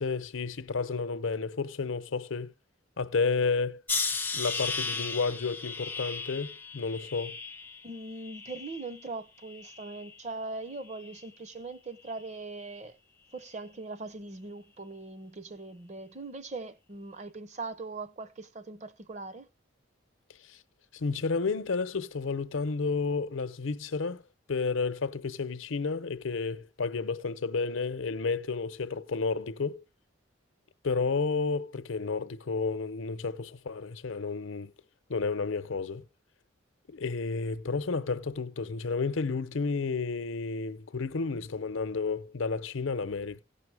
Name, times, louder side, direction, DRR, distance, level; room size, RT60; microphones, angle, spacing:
voice 1, 0.0-2.5 3.0-3.8 4.3-7.4 20.5-20.6 20.9-24.2 24.5-29.8 30.8-34.7 35.1-36.0 36.9-43.4, left 4 dB, 80° left, 0.7 m, -31 dB
sound 1, 3.9-9.0 9.5-10.2 10.9-11.2, left 4 dB, 10° left, 0.5 m, -36 dB
voice 2, 7.8-13.0 13.3-19.5, right 3 dB, 35° right, 0.7 m, -41 dB
16.5 x 5.8 x 4.7 m
head